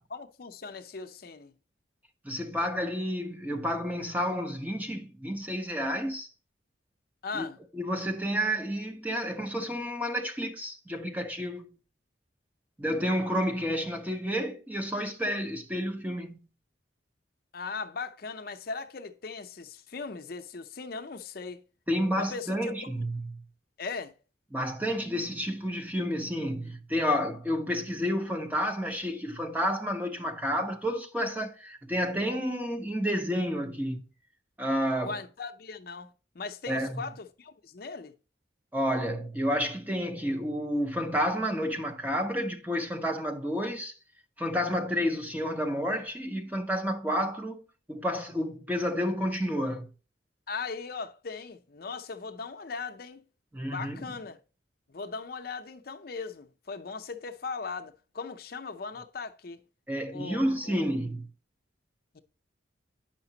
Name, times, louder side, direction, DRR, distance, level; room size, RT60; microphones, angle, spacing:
voice 1, 0.1-1.5 7.2-7.6 17.5-21.6 22.2-22.6 22.8-23.0 23.8-24.2 35.0-38.1 50.5-53.2 53.7-54.4 54.9-59.6 60.1-60.9 62.1-62.2, left 4 dB, 50° left, 0.6 m, -39 dB
voice 2, 2.2-6.3 7.3-7.5 7.7-11.7 12.8-16.4 21.9-23.3 24.5-34.0 34.6-35.2 36.7-37.0 38.7-43.9 44.4-47.6 47.9-49.9 53.5-54.0 59.9-61.3, equal, 10° right, 0.7 m, -30 dB
8.9 x 5.8 x 2.8 m
head